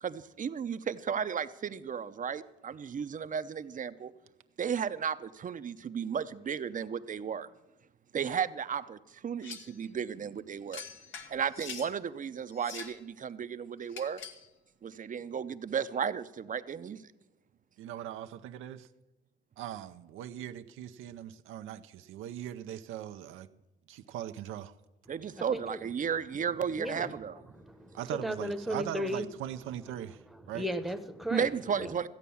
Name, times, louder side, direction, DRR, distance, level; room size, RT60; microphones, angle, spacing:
voice 1, 0.0-4.1 4.6-7.5 8.1-10.8 11.3-14.2 14.8-17.0 25.1-27.4 31.3-32.1, right 7 dB, 40° right, 0.6 m, -34 dB
sound 1, 9.4-9.8 10.7-11.9 12.5-13.0 13.9-14.5, left 6 dB, 75° left, 1.4 m, -44 dB
voice 2, 17.8-18.9 19.6-23.5 23.9-24.7 27.9-30.2 30.5-30.7, right 11 dB, 90° right, 0.6 m, -40 dB
voice 3, 25.5-25.8 26.8-27.1 27.5-29.2 30.4-31.5 31.8-31.9, equal, ahead, 0.9 m, -35 dB
14.5 x 8.3 x 7.0 m
cardioid pair, 90°, 20 cm